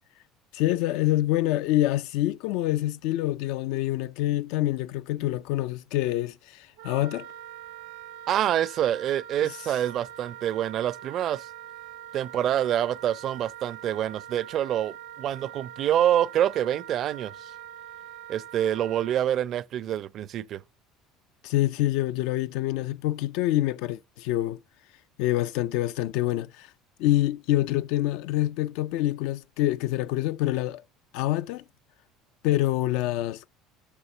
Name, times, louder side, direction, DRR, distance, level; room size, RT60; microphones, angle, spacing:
voice 1, 0.5-7.3 21.4-24.6 25.2-26.7 27.0-30.8 31.1-31.6 32.4-33.5, left 15 dB, 75° left, 0.4 m, -26 dB
Wind instrument woodwind instrument, 6.8-19.2, right 11 dB, 80° right, 0.8 m, -43 dB
voice 2, 8.3-11.5 12.1-17.5 18.3-20.6, right 11 dB, 55° right, 0.5 m, -26 dB
6.9 x 4.9 x 6.8 m
supercardioid pair, 85°, 0 cm